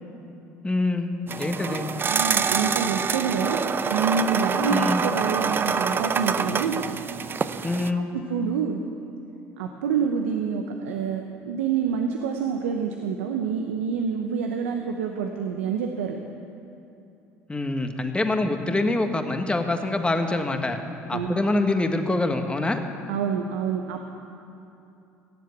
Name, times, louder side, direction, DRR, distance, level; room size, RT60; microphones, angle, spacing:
voice 1, 0.6-1.1 1.4-1.9 4.7-5.0 7.6-8.1 17.5-20.8 21.1-22.8, left 2 dB, 15° left, 6 dB, 1.5 m, -25 dB
sound 1, 1.3-7.9, right 6 dB, 30° right, 0.6 m, -26 dB
voice 2, 2.1-6.8 7.9-8.8 9.6-16.2 21.1-21.4 23.1-24.1, right 6 dB, 85° right, 3 dB, 1.0 m, -27 dB
17.5 x 7.6 x 8.2 m, 2.8 s
hypercardioid pair, 75°, 7 cm